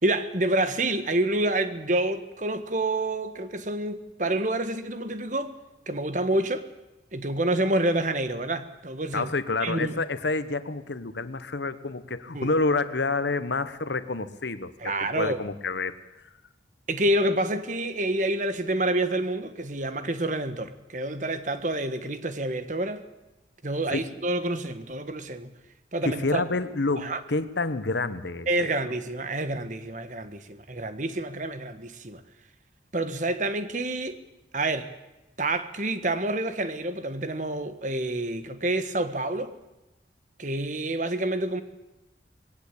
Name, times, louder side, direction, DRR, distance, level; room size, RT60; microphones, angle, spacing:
voice 1, 0.0-5.5 5.9-6.6 7.1-9.3 9.6-10.0 12.3-12.5 14.8-15.4 16.9-23.0 23.6-25.5 25.9-26.4 27.0-27.2 28.5-32.2 32.9-34.2 34.5-34.9 35.4-39.5 40.4-41.6, right 1 dB, 45° right, 1.5 m, -28 dB
voice 2, 9.1-15.9 23.9-24.0 26.0-28.7, left 3 dB, 85° left, 1.2 m, -28 dB
21.0 x 17.0 x 8.5 m
head